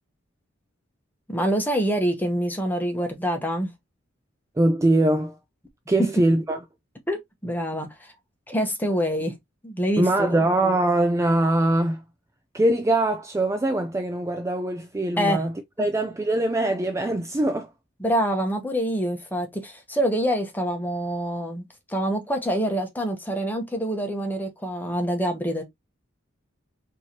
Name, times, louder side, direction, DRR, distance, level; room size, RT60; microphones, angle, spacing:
voice 1, 1.3-3.7 6.0-6.1 7.1-8.1 8.5-9.3 9.6-10.5 15.2-15.4 15.8-15.9 18.0-25.6, equal, 10° left, 0.9 m, -26 dB
voice 2, 4.6-5.4 5.9-6.6 10.0-12.0 12.5-15.5 15.8-17.7, right 1 dB, 15° right, 0.3 m, -22 dB
4.6 x 2.8 x 2.8 m
head